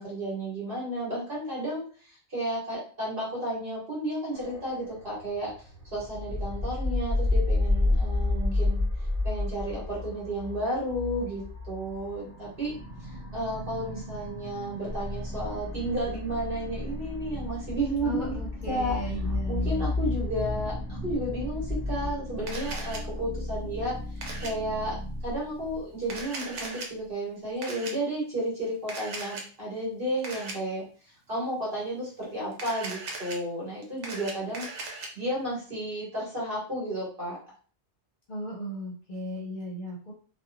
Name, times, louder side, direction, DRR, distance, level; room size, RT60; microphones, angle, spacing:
voice 1, 0.0-5.5 5.9-8.8 9.2-12.7 13.1-18.3 18.7-19.0 19.2-23.9 24.4-25.0 25.2-30.8 31.3-37.4, right 1 dB, 50° right, -6 dB, 1.4 m, -32 dB
sound 1, 4.3-22.1, left 2 dB, 20° right, 1.4 m, -31 dB
sound 2, 14.9-26.6, left 1 dB, 15° left, 0.9 m, -37 dB
voice 2, 18.0-19.9 38.3-40.1, equal, 50° left, -3 dB, 0.8 m, -36 dB
Camera, 22.5-23.0 24.2-24.5 26.0-26.9 27.6-27.9 28.9-29.4 30.2-30.5 32.5-33.4 33.8-35.1, right 3 dB, 85° right, 1.0 m, -38 dB
2.8 x 2.3 x 2.5 m, 0.42 s
omnidirectional pair, 1.2 m